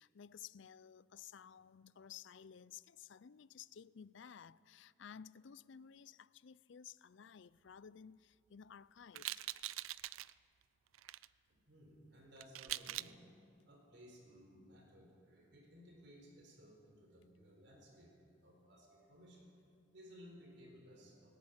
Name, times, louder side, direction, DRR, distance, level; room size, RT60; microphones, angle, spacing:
voice 1, 0.0-9.7, left 8 dB, 65° left, 0.4 m, -55 dB
sound 1, 9.1-10.3 10.9-11.3 12.4-13.1, right 15 dB, 85° right, 0.5 m, -43 dB
voice 2, 11.5-13.3 13.6-19.5 19.9-21.4, equal, 55° right, 4.2 m, -59 dB
19.0 x 17.0 x 9.7 m
head